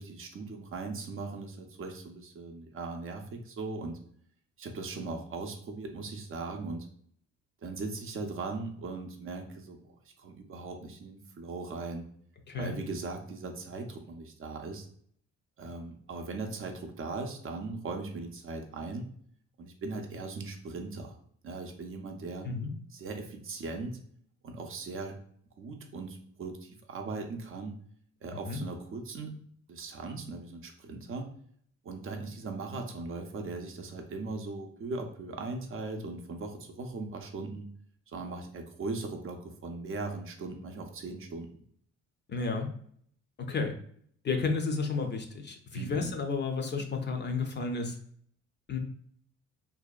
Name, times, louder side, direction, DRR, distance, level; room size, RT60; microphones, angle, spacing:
voice 1, 0.0-4.0 4.6-6.9 7.6-9.8 10.2-12.0 12.6-14.9 15.6-19.0 19.6-21.2 21.4-22.5 22.9-24.0 24.4-25.1 25.6-27.8 28.2-29.3 29.7-31.3 31.8-37.7 38.1-41.5 45.7-46.1, right 3 dB, 45° right, 3 dB, 0.5 m, -39 dB
voice 2, 12.5-12.8 22.4-22.7 28.3-28.6 42.3-42.7 43.4-43.7 44.2-48.0 48.7-48.8, left 4 dB, 35° left, 4 dB, 0.5 m, -32 dB
2.7 x 2.2 x 2.3 m, 0.62 s
cardioid pair, 90°, 30 cm